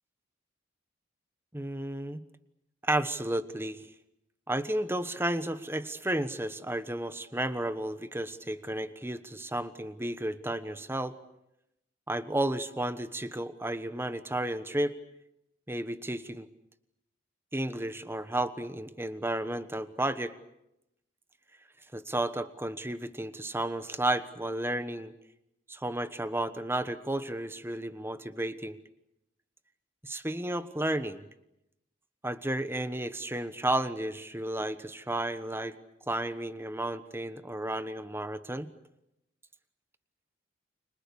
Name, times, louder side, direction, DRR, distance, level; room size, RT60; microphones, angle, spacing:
voice 1, 1.5-2.2 2.8-3.9 4.5-11.1 12.1-14.9 15.7-16.5 17.5-20.3 21.9-25.1 25.7-28.8 30.0-31.3 32.2-35.8 36.1-38.7, right 1 dB, 10° right, 12 dB, 1.2 m, -32 dB
30.0 x 26.5 x 7.0 m, 0.86 s
head